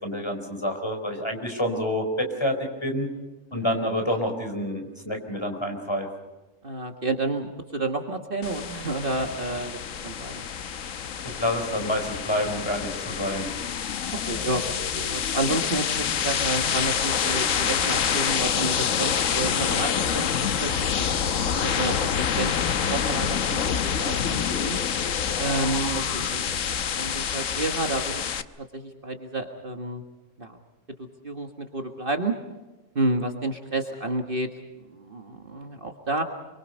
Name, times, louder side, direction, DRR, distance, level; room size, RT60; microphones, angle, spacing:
voice 1, 0.0-3.1 3.5-6.1 11.2-13.5, equal, 20° left, 4 dB, 4.3 m, -28 dB
voice 2, 3.5-3.8 6.6-10.4 14.3-14.6 14.9-21.1 21.5-22.1 22.4-24.8 25.4-28.2 28.6-30.0 30.4-30.6 31.0-32.3 33.0-34.5 34.9-36.2, right 2 dB, 45° right, 4 dB, 1.8 m, -30 dB
sound 1, 8.4-28.4, left 8 dB, 85° left, 1.3 m, -27 dB
26.5 x 24.5 x 5.4 m, 1.2 s
omnidirectional pair, 1.3 m